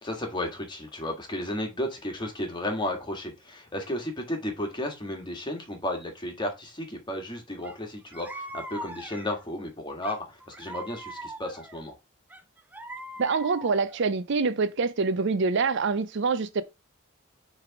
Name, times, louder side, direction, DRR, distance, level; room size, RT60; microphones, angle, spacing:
voice 1, 0.0-11.9, left 1 dB, 20° left, 1.6 m, -33 dB
sound 1, 7.6-7.8 8.1-9.5 10.0-11.8 12.3-14.1, right 1 dB, 10° right, 0.6 m, -41 dB
voice 2, 13.2-16.6, right 4 dB, 60° right, 0.5 m, -25 dB
6.4 x 3.4 x 4.8 m
head